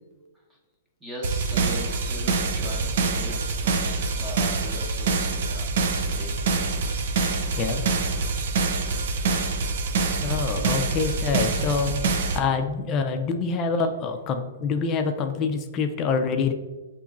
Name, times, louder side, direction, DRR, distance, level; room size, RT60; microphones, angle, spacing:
voice 1, 1.0-6.4 13.8-13.9, equal, 10° right, -3 dB, 0.9 m, -39 dB
sound 1, 1.2-12.4, right 4 dB, 60° right, 0.5 m, -25 dB
voice 2, 7.6-7.9 10.2-16.5, left 5 dB, 25° left, 6 dB, 0.4 m, -26 dB
6.9 x 3.0 x 2.4 m, 1.2 s
hypercardioid pair, 150°, 0 cm